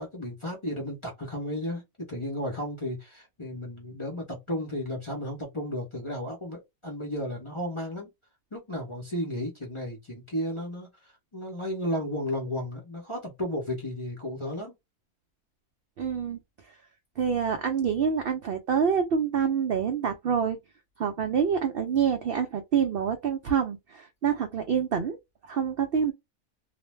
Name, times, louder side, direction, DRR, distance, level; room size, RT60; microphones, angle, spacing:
voice 1, 0.0-8.1 8.5-14.7, left 1 dB, 30° left, 0.6 m, -34 dB
voice 2, 16.0-16.4 17.2-20.6 21.0-25.2 25.5-26.1, right 7 dB, 80° right, 0.5 m, -26 dB
2.5 x 2.1 x 3.1 m
omnidirectional pair, 1.5 m